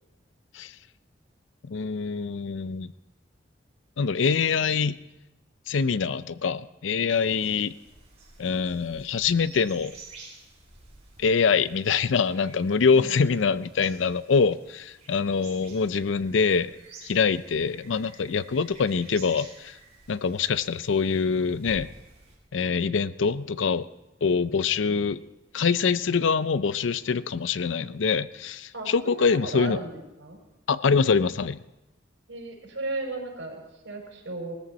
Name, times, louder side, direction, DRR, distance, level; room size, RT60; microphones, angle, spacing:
voice 1, 1.6-2.9 4.0-5.0 5.7-7.7 8.4-10.0 11.2-16.7 17.0-19.8 20.1-21.9 22.5-23.9 24.2-25.2 25.5-29.8 30.7-31.6, left 5 dB, 90° left, 15 dB, 0.5 m, -24 dB
sound 1, 7.1-22.3, right 3 dB, 30° right, 6.0 m, -51 dB
voice 2, 12.9-13.2 28.7-30.4 32.3-34.5, right 2 dB, 80° right, 0 dB, 4.9 m, -35 dB
19.5 x 13.5 x 4.2 m, 0.96 s
head